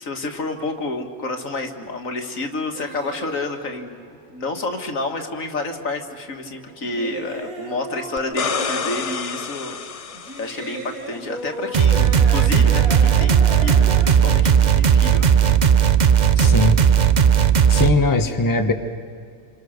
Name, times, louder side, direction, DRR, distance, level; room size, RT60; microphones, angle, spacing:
voice 1, 0.0-4.0 4.3-9.8 10.4-15.5, left 2 dB, 65° left, 5 dB, 2.2 m, -29 dB
sound 1, 2.7-4.6 5.0-9.4 10.1-14.1, right 2 dB, 80° right, 2.7 m, -36 dB
sound 2, 8.2-11.0 13.8-13.9, left 6 dB, 45° left, 0.5 m, -29 dB
sound 3, 11.7-17.9, right 8 dB, 40° right, 0.7 m, -16 dB
voice 2, 16.4-16.8 17.7-18.7, left 2 dB, 15° left, 5 dB, 1.1 m, -19 dB
28.5 x 27.0 x 6.6 m, 2.3 s
omnidirectional pair, 1.5 m